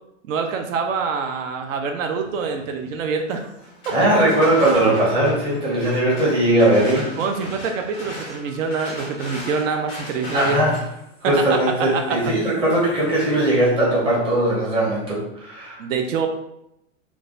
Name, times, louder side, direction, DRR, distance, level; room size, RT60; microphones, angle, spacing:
voice 1, 0.3-3.5 7.2-10.6 11.2-12.2 15.8-16.3, right 5 dB, 75° right, 5 dB, 0.5 m, -25 dB
sound 1, 3.6-13.4, equal, 15° left, 0.3 m, -39 dB
voice 2, 3.9-7.1 10.3-10.8 11.2-15.8, right 1 dB, 15° right, -5 dB, 0.7 m, -19 dB
3.2 x 2.3 x 2.5 m, 0.81 s
supercardioid pair, 150°, 39 cm